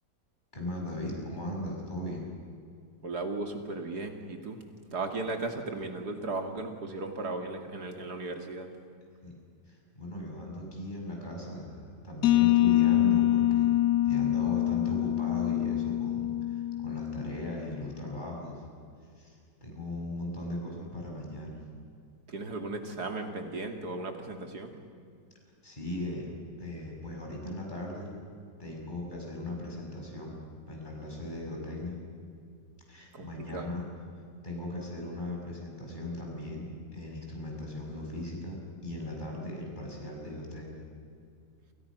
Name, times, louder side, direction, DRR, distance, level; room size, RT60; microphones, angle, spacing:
voice 1, 0.5-2.3 9.2-9.3 9.7-13.8 14.0-18.6 19.2-21.6 25.6-26.3 26.6-28.1 28.6-30.4 30.7-32.0 32.9-33.9 34.4-40.9, left 1 dB, 25° left, -1 dB, 6.5 m, -38 dB
voice 2, 3.0-4.6 4.9-8.7 22.3-24.8 33.1-33.7, right 2 dB, 65° right, 5 dB, 3.1 m, -36 dB
sound 1, 12.2-17.8, left 14 dB, 75° left, 1.4 m, -25 dB
28.5 x 27.5 x 6.2 m, 2.4 s
omnidirectional pair, 1.8 m